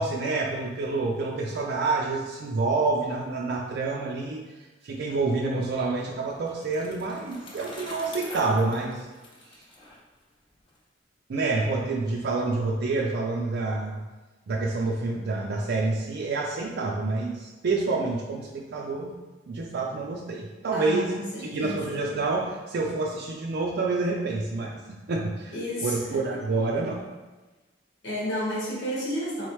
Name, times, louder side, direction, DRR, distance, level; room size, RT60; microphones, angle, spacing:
voice 1, 0.0-4.4 4.8-9.1 9.4-9.6 11.3-14.0 14.5-19.1 19.5-21.1 21.4-27.0, right 3 dB, 60° right, -1 dB, 0.4 m, -28 dB
Bicycle, 6.0-10.8, left 1 dB, 25° left, 0.6 m, -45 dB
voice 2, 20.7-21.9 25.5-26.4 28.0-29.5, equal, 70° left, -4 dB, 1.2 m, -31 dB
3.8 x 3.1 x 3.1 m, 1.2 s
head